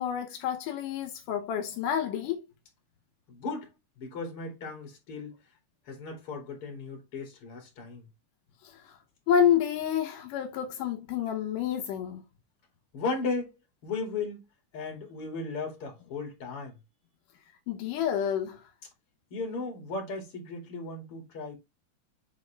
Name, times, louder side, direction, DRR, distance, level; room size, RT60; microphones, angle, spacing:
voice 1, 0.0-2.4 9.3-12.2 17.7-18.6, left 9 dB, 80° left, 2.5 m, -28 dB
voice 2, 3.3-3.7 4.0-5.4 5.9-8.1 12.9-13.5 13.8-14.4 14.7-16.8 19.3-21.6, left 3 dB, 45° left, 2.9 m, -36 dB
7.4 x 4.0 x 3.3 m
omnidirectional pair, 3.7 m